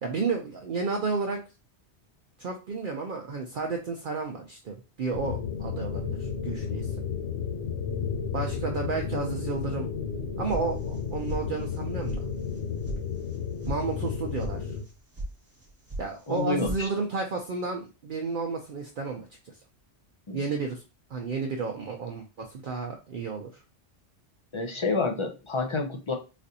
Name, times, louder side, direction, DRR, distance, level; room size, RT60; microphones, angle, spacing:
voice 1, 0.0-1.4 2.4-6.9 8.3-9.9 10.4-12.2 13.7-14.7 16.0-19.5 20.3-20.8 21.1-23.6, right 4 dB, 55° right, 2 dB, 0.6 m, -32 dB
sound 1, 5.1-14.8, left 6 dB, 75° left, 0.9 m, -32 dB
sound 2, 10.5-11.0 11.3-11.8 12.1-12.2 12.5-13.0 13.3-13.8 14.0-14.5 14.8-15.3 15.6-16.1 16.3-16.8, right 1 dB, 15° right, 0.7 m, -36 dB
voice 2, 16.3-16.9 20.3-20.4 24.5-26.1, left 3 dB, 45° left, 2 dB, 0.3 m, -28 dB
4.1 x 2.5 x 2.6 m, 0.31 s
omnidirectional pair, 1.2 m